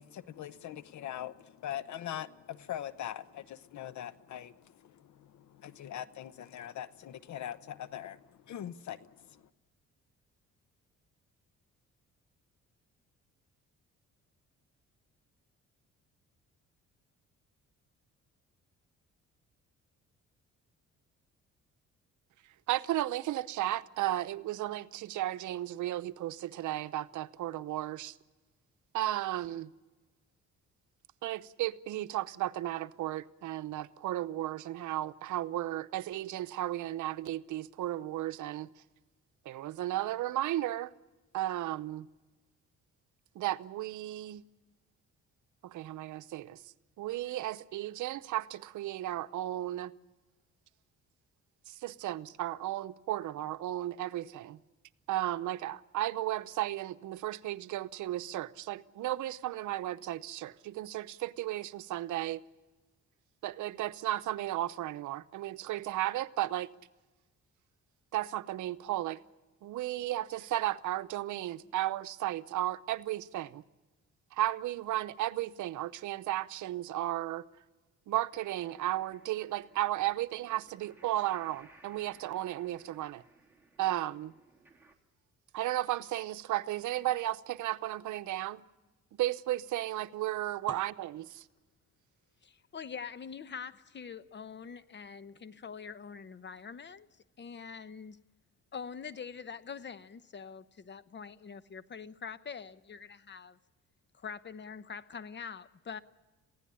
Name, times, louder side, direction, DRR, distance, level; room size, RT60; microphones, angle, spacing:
voice 1, 0.0-9.4, left 11 dB, 70° left, 1.0 m, -42 dB
voice 2, 22.7-28.2 28.9-29.7 31.2-38.7 39.5-40.9 41.3-42.1 43.3-44.5 45.6-46.6 47.0-49.9 51.7-54.6 55.1-62.4 63.4-66.7 68.1-69.2 69.6-73.6 74.3-77.4 78.1-83.2 83.8-84.3 85.5-88.6 89.2-91.4, right 14 dB, 80° right, 0.8 m, -34 dB
sound 1, 78.3-84.9, right 2 dB, 5° right, 3.0 m, -62 dB
voice 3, 92.4-97.1 97.4-98.2 98.7-103.6 104.1-106.0, left 6 dB, 35° left, 0.9 m, -44 dB
23.0 x 16.0 x 9.9 m
cardioid pair, 90°, 30 cm